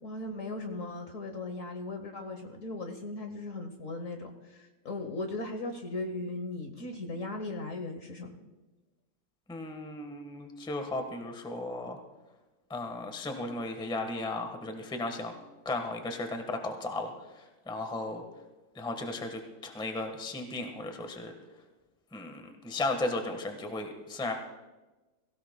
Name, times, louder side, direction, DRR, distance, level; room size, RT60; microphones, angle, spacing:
voice 1, 0.0-8.3, left 2 dB, 50° left, 5 dB, 1.2 m, -38 dB
voice 2, 9.5-12.0 12.7-15.3 15.6-18.2 18.7-21.3 22.1-24.3, left 2 dB, 5° left, 5 dB, 0.9 m, -35 dB
23.0 x 16.0 x 2.2 m, 1.1 s
omnidirectional pair, 2.1 m